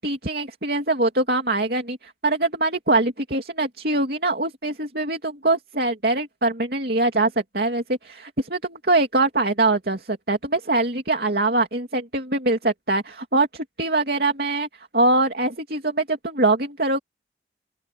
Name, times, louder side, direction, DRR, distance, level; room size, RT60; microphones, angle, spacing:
voice 1, 0.0-14.7 14.9-17.0, right 2 dB, 60° right, 3.0 m, -23 dB
open air
head